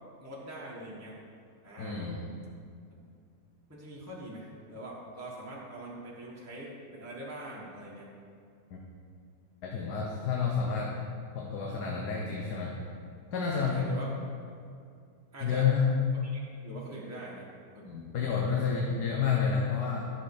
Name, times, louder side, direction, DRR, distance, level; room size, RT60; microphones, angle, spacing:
voice 1, 0.2-1.2 1.6-2.0 2.9-3.0 3.7-8.1 13.5-14.1 15.3-15.7 16.3-17.4 17.7-17.9 18.3-18.8, right 1 dB, 10° right, -6 dB, 1.5 m, -43 dB
voice 2, 1.8-2.2 8.7-8.8 9.6-11.0 11.3-12.8 13.3-13.9 15.4-15.9 17.8-20.1, left 6 dB, 90° left, -1 dB, 1.5 m, -29 dB
11.5 x 6.4 x 4.9 m, 2.3 s
omnidirectional pair, 1.7 m